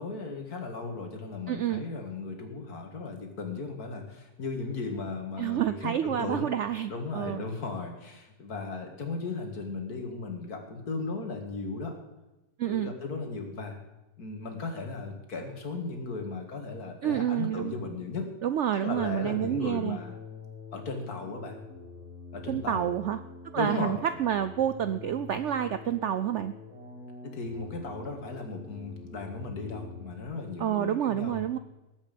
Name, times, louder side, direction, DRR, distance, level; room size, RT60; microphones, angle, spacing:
voice 1, 0.0-6.5 6.9-11.9 12.6-13.8 14.2-18.3 18.7-20.1 20.7-21.6 22.3-22.9 23.5-24.0 27.2-31.4, left 3 dB, 65° left, 4 dB, 2.5 m, -36 dB
voice 2, 1.5-1.8 5.4-7.5 12.6-12.9 17.0-17.8 18.4-20.0 22.5-23.2 23.5-26.5 30.6-31.6, right 10 dB, 70° right, 11 dB, 0.7 m, -29 dB
sound 1, 18.9-30.2, left 4 dB, 10° right, 5.6 m, -46 dB
19.5 x 8.3 x 5.2 m, 1.0 s
omnidirectional pair, 1.7 m